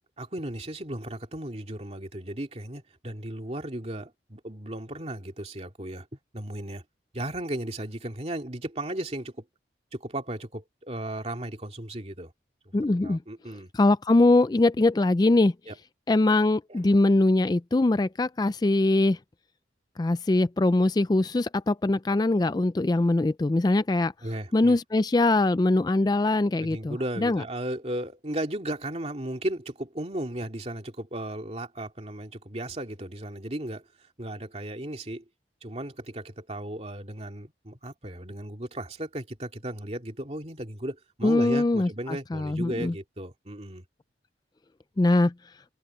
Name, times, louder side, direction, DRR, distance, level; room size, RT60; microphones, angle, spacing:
voice 1, 0.2-6.1 6.3-6.8 7.1-9.3 9.9-12.3 13.0-13.7 15.7-15.8 16.7-16.8 24.2-24.8 26.6-33.8 34.2-35.2 35.6-43.8, right 1 dB, 35° right, 2.6 m, -35 dB
voice 2, 12.7-13.2 13.7-15.5 16.1-19.2 20.0-24.1 24.5-27.4 41.2-42.9 45.0-45.3, left 2 dB, 20° left, 0.3 m, -22 dB
head